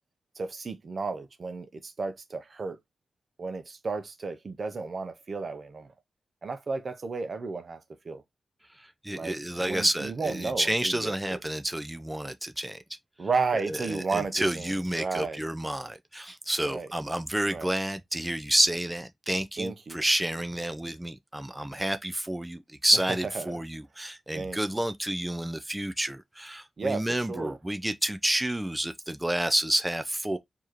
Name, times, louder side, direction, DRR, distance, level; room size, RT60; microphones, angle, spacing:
voice 1, 0.4-2.8 3.4-5.9 6.4-8.2 9.1-11.4 13.2-15.4 16.6-16.9 17.5-17.7 19.6-20.0 23.3-23.6 24.3-24.6 26.8-27.6, right 4 dB, 55° right, 0.7 m, -33 dB
voice 2, 9.0-12.8 13.7-30.4, right 1 dB, 10° right, 0.5 m, -29 dB
4.6 x 2.9 x 2.9 m
cardioid pair, 50°, 0 cm